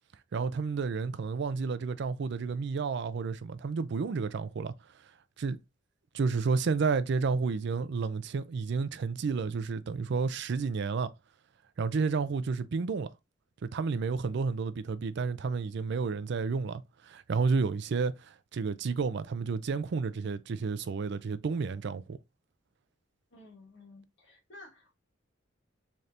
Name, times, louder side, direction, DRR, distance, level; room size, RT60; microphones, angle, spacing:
voice 1, 0.3-4.7 5.4-5.6 6.1-11.1 11.8-13.1 13.6-22.2, right 4 dB, 60° right, 0.4 m, -31 dB
voice 2, 23.3-25.0, left 2 dB, 65° left, 1.6 m, -53 dB
4.2 x 3.3 x 2.5 m
head